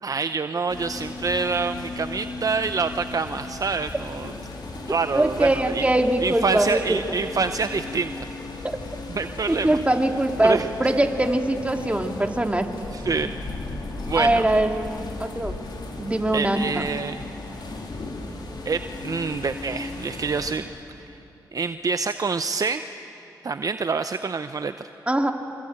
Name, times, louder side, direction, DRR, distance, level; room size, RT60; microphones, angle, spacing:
voice 1, 0.0-4.3 4.9-5.9 6.2-8.1 9.1-9.8 10.4-10.7 12.9-13.3 14.0-14.4 16.3-17.2 18.7-20.7 21.0-21.2 21.5-22.8 23.4-24.9, right 4 dB, 50° right, 10 dB, 0.7 m, -26 dB
sound 1, 0.7-20.5, left 2 dB, 65° left, 4.1 m, -36 dB
voice 2, 5.1-7.1 8.6-8.8 9.5-12.7 14.2-14.7 15.2-15.5 16.0-16.7 25.1-25.3, right 1 dB, 15° right, 4 dB, 2.6 m, -22 dB
25.5 x 25.5 x 9.0 m, 2.9 s
cardioid pair, 50°, 8 cm